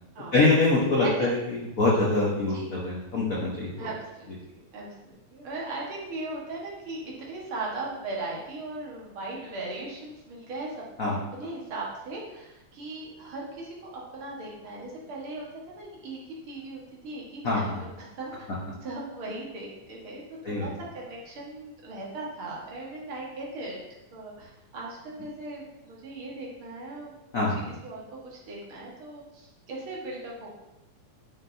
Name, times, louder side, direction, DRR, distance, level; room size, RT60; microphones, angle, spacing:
voice 1, 0.3-3.7 11.0-11.2 17.4-17.7 20.4-20.7 27.3-27.6, left 2 dB, 70° left, -5 dB, 0.8 m, -24 dB
voice 2, 3.8-4.3 4.7-7.0 7.3-16.2 16.5-18.5 18.8-20.2 20.5-23.8 24.1-27.1 27.8-30.5, right 2 dB, 50° right, -3 dB, 2.3 m, -38 dB
10.5 x 5.8 x 2.8 m, 0.94 s
omnidirectional pair, 3.3 m